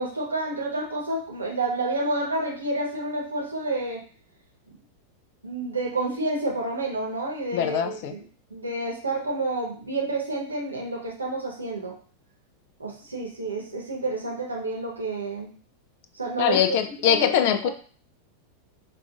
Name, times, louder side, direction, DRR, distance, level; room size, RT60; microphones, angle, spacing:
voice 1, 0.0-4.0 4.7-4.8 5.4-8.2 8.5-12.0 12.8-15.5 16.1-16.6 17.0-17.7, right 2 dB, 80° right, -1 dB, 0.9 m, -29 dB
voice 2, 7.5-8.1 16.4-17.7, left 9 dB, 50° left, 9 dB, 0.4 m, -22 dB
4.7 x 2.3 x 2.4 m, 0.43 s
figure-of-eight pair, 90°, 0 cm